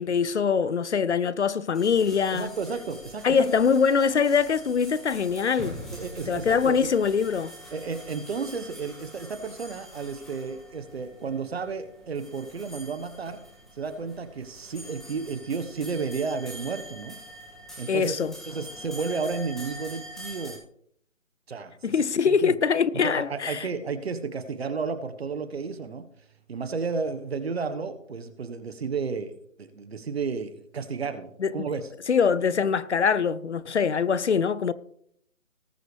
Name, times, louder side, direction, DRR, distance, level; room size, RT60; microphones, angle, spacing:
voice 1, 0.0-2.5 3.2-5.8 6.3-7.5 17.9-18.3 21.8-23.7 31.4-31.7 32.1-34.7, left 6 dB, 60° left, 0.7 m, -23 dB
sound 1, 1.7-20.6, equal, ahead, 2.0 m, -44 dB
voice 2, 2.3-3.4 5.9-6.9 7.7-13.4 13.8-17.2 17.8-18.1 18.5-20.6 21.5-22.0 22.3-22.5 23.0-26.1 26.5-29.3 29.6-31.8, right 5 dB, 50° right, 1.3 m, -32 dB
19.0 x 7.9 x 3.4 m
figure-of-eight pair, 160°, 39 cm